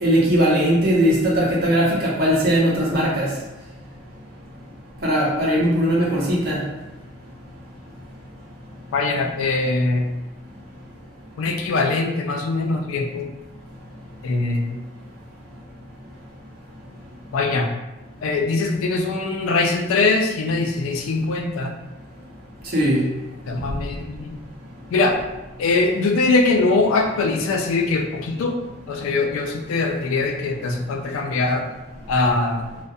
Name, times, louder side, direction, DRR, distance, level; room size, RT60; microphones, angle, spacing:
voice 1, 0.0-3.3 5.0-6.6 22.7-23.0, equal, 45° right, -5 dB, 0.7 m, -19 dB
voice 2, 8.9-10.0 11.4-13.3 14.2-14.8 17.3-17.7 18.2-21.8 23.5-24.4 24.9-25.2 25.6-28.6 28.9-31.6 32.1-32.6, left 3 dB, 85° left, 4 dB, 0.3 m, -22 dB
2.3 x 2.0 x 2.6 m, 1.1 s
head